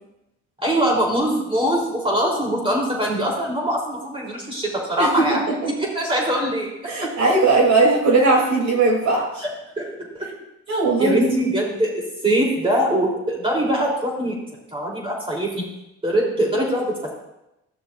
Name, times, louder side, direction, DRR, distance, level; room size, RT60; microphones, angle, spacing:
voice 1, 0.6-6.7 9.4-9.5 9.8-9.9 10.1-10.3 10.7-14.4 14.7-15.5 16.0-16.9, right 1 dB, 20° right, -3 dB, 3.6 m, -22 dB
voice 2, 5.0-5.4 6.9-9.4 10.7-11.2, right 3 dB, 65° right, -2 dB, 3.4 m, -18 dB
14.0 x 6.8 x 2.6 m, 0.89 s
cardioid pair, 90°, 30 cm